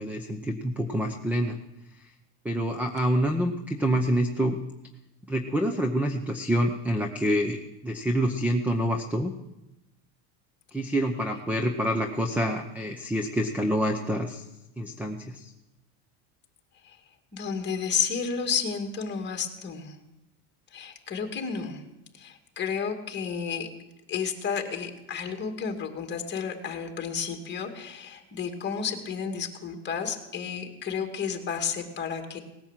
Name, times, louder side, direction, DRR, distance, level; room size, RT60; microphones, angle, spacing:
voice 1, 0.0-1.6 2.4-4.6 5.3-9.3 10.7-14.4 14.8-15.5, equal, 5° right, 6 dB, 0.7 m, -27 dB
voice 2, 17.3-19.9 20.7-21.8 22.2-23.7 24.1-32.4, left 6 dB, 25° left, 4 dB, 2.3 m, -31 dB
19.0 x 10.5 x 7.4 m, 0.94 s
cardioid pair, 145°, 44 cm